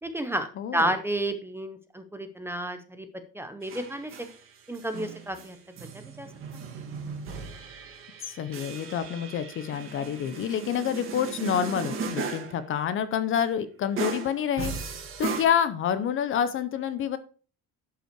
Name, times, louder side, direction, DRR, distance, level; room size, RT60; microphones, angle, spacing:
voice 1, 0.0-0.5 0.7-3.1 3.3-4.1 4.7-5.6 5.9-6.3, right 1 dB, 5° right, 8 dB, 0.6 m, -31 dB
voice 2, 0.6-0.9 8.2-17.2, left 8 dB, 35° left, 13 dB, 0.6 m, -28 dB
sound 1, 3.6-4.4 4.7-12.6 13.3-13.4 14.0-15.4, right 5 dB, 35° right, 1.6 m, -37 dB
11.0 x 5.5 x 4.4 m, 0.38 s
cardioid pair, 180°, 36 cm